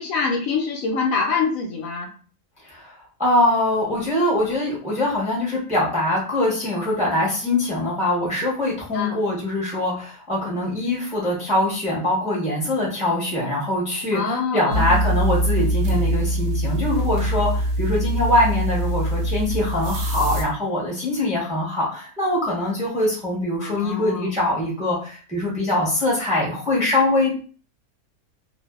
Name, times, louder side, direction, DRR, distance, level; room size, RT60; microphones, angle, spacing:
voice 1, 0.0-2.1 8.9-9.2 14.1-15.0 23.6-24.3, left 4 dB, 70° left, 1 dB, 1.0 m, -25 dB
voice 2, 3.2-27.5, left 1 dB, 5° right, -5 dB, 0.7 m, -23 dB
sound 1, 14.7-20.4, equal, 70° right, 0.8 m, -23 dB
2.5 x 2.3 x 2.3 m, 0.39 s
omnidirectional pair, 1.5 m